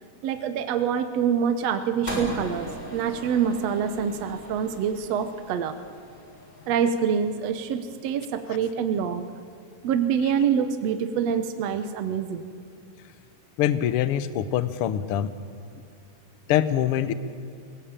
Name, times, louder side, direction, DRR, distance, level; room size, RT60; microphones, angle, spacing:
voice 1, 0.2-5.7 6.7-9.3 9.8-12.5, right 7 dB, 65° right, 8 dB, 1.8 m, -26 dB
sound 1, 2.1-8.4, right 1 dB, 10° left, 5.6 m, -39 dB
voice 2, 13.6-15.3 16.5-17.1, left 11 dB, 85° left, 13 dB, 1.2 m, -24 dB
22.5 x 18.5 x 8.9 m, 2.5 s
omnidirectional pair, 3.8 m